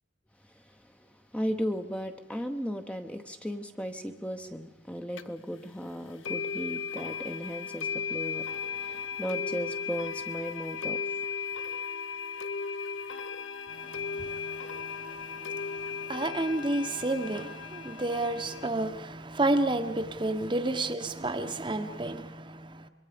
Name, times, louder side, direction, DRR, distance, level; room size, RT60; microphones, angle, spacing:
voice 1, 0.5-11.1, equal, 5° left, 0.9 m, -36 dB
sound 1, 5.2-5.3 6.2-18.7, left 6 dB, 85° left, 0.8 m, -36 dB
voice 2, 13.7-22.9, right 2 dB, 25° right, 1.0 m, -31 dB
26.5 x 22.0 x 5.1 m
head